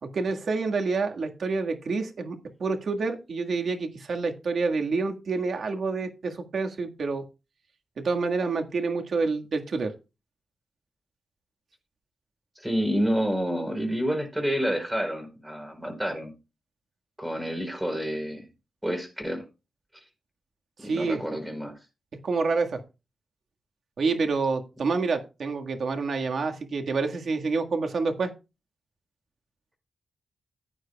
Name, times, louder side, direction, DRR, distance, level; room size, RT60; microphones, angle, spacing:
voice 1, 0.0-7.2 8.0-9.9 20.8-21.2 22.2-22.8 24.0-28.3, right 4 dB, 60° right, 5 dB, 1.7 m, -28 dB
voice 2, 12.6-16.3 17.2-18.5 18.8-19.4 20.8-21.7, equal, 10° right, 6 dB, 4.4 m, -29 dB
15.5 x 9.2 x 2.3 m, 0.28 s
wide cardioid pair, 100°, 0 cm